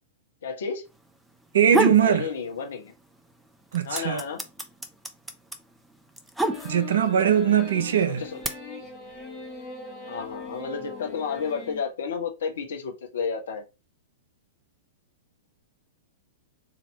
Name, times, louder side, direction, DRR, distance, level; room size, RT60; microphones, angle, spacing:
voice 1, 0.4-0.8 2.0-2.9 3.8-4.4 8.1-8.4 10.1-13.6, left 6 dB, 60° left, 1.0 m, -31 dB
sound 1, 1.4-2.1 2.5-3.2 3.5-7.1 7.8-8.5, right 2 dB, 5° right, 0.5 m, -27 dB
voice 2, 1.5-2.3 3.7-4.2 6.6-8.2, right 9 dB, 60° right, 0.6 m, -21 dB
sound 2, 6.4-11.8, left 4 dB, 30° left, 1.2 m, -40 dB
2.9 x 2.8 x 4.1 m
figure-of-eight pair, 100°, 0 cm